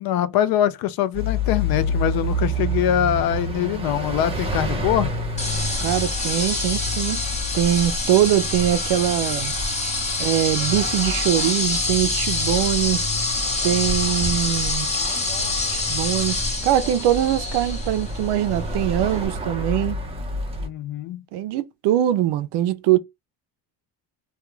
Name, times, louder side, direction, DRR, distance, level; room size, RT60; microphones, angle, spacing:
voice 1, 0.0-5.1 20.6-21.2, left 11 dB, 65° left, 0.5 m, -23 dB
sound 1, 1.1-20.7, equal, 15° right, 0.7 m, -30 dB
sound 2, 5.4-19.3, left 2 dB, 20° left, 0.9 m, -26 dB
voice 2, 5.8-7.2 7.5-9.5 10.2-13.0 13.6-14.9 15.7-20.0 21.3-23.0, right 12 dB, 85° right, 0.5 m, -22 dB
2.3 x 2.2 x 2.9 m
cardioid pair, 135°, 40 cm